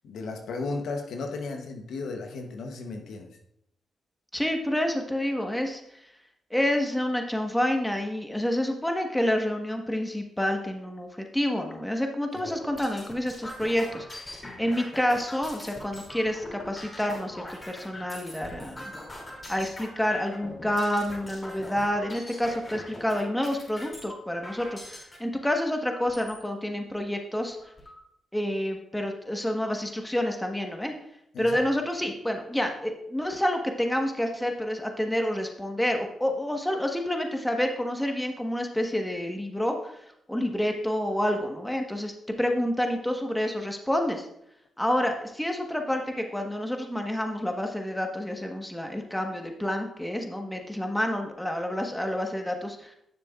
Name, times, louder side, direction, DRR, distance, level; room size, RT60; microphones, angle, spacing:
voice 1, 0.0-3.3 31.3-31.6, left 3 dB, 75° left, 3 dB, 1.0 m, -34 dB
voice 2, 4.3-5.8 6.5-14.3 14.6-18.9 19.5-27.6 28.3-30.9 31.4-39.9 40.3-44.3 44.8-52.9, left 1 dB, 5° left, 3 dB, 1.3 m, -28 dB
sound 1, 12.3-25.2 25.8-26.4 26.9-27.0 27.3-28.0, left 1 dB, 30° left, 2.8 m, -42 dB
10.0 x 6.6 x 2.5 m, 0.76 s
supercardioid pair, 55°, 0 cm